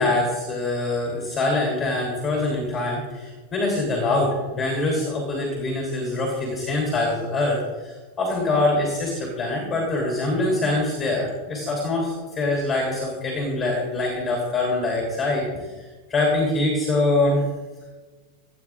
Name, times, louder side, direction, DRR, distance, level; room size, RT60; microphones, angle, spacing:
voice 1, 0.0-15.7 16.1-17.4, left 2 dB, 15° left, -1 dB, 3.3 m, -24 dB
29.0 x 9.8 x 2.5 m, 1.3 s
supercardioid pair, 170°, 0 cm